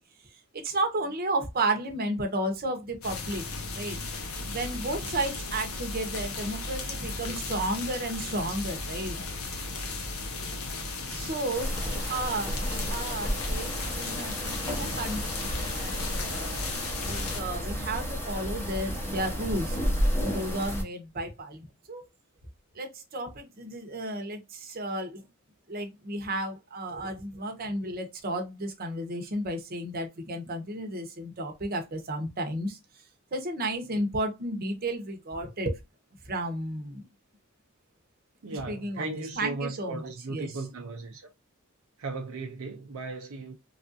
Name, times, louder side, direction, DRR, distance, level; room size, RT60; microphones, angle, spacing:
voice 1, 0.5-3.4 3.7-4.0 4.5-9.2 11.1-16.6 17.1-22.0 22.7-25.2 25.7-32.8 33.3-35.8 36.3-37.0 38.5-40.5, right 1 dB, 45° right, 0.8 m, -33 dB
sound 1, 3.0-17.4, left 3 dB, 80° left, 0.8 m, -36 dB
sound 2, 11.5-20.8, equal, 10° left, 0.8 m, -32 dB
voice 2, 38.4-41.3 42.0-43.5, right 3 dB, 75° right, 0.6 m, -36 dB
3.4 x 2.5 x 2.6 m
head